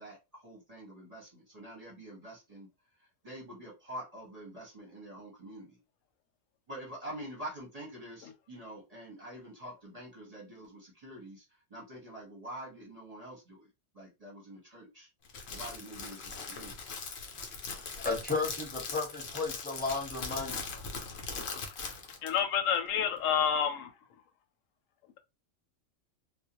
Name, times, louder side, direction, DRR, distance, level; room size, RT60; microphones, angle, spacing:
voice 1, 0.0-2.7 3.2-5.8 6.7-11.4 11.7-13.7 13.9-15.1 15.5-16.8, right 1 dB, 35° right, 0.7 m, -46 dB
Crackle, 15.2-22.4, left 4 dB, 60° left, 0.9 m, -40 dB
voice 2, 18.0-20.6, left 3 dB, 10° left, 0.9 m, -34 dB
voice 3, 22.2-23.9, left 8 dB, 90° left, 1.0 m, -29 dB
2.4 x 2.0 x 2.7 m
omnidirectional pair, 1.3 m